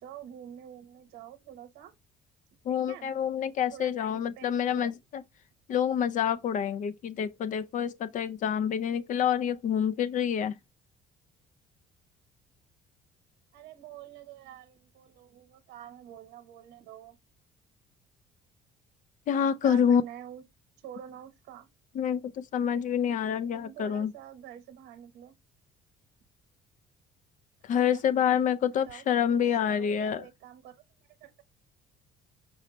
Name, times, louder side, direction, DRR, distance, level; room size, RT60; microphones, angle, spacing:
voice 1, 0.0-1.9 2.7-3.2 3.7-5.0 13.5-17.2 19.6-20.4 20.8-21.7 23.5-25.3 27.9-30.7 31.2-31.4, right 10 dB, 90° right, 0.9 m, -47 dB
voice 2, 2.7-5.2 5.7-10.5 19.3-20.0 22.0-24.1 27.7-30.2, left 8 dB, 50° left, 0.4 m, -27 dB
5.5 x 2.2 x 3.9 m
cardioid pair, 110°, 17 cm